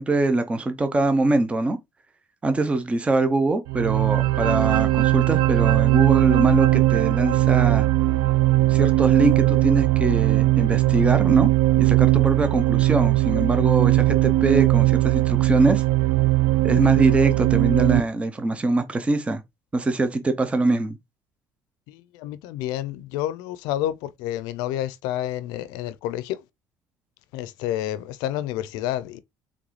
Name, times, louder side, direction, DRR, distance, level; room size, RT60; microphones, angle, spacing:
voice 1, 0.0-1.8 2.4-7.9 8.7-11.5 11.8-15.8 16.6-19.4 19.7-21.0, right 2 dB, 15° right, 0.7 m, -23 dB
sound 1, 3.7-18.0, right 17 dB, 75° right, 0.4 m, -19 dB
voice 2, 21.9-26.4 27.3-29.2, left 12 dB, 85° left, 0.5 m, -29 dB
3.8 x 3.5 x 3.2 m
cardioid pair, 110°, 7 cm